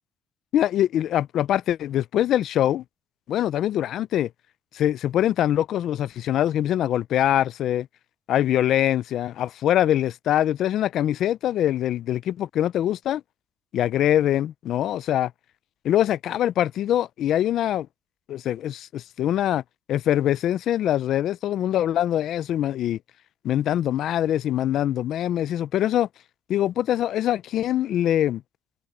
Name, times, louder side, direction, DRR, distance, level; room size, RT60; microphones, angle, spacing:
voice 1, 0.5-2.8 3.3-4.3 4.7-7.9 8.3-13.2 13.7-15.3 15.8-17.9 18.3-19.6 19.9-23.0 23.4-26.1 26.5-28.4, left 11 dB, 55° left, 0.4 m, -23 dB
cardioid pair, 160°, 0 cm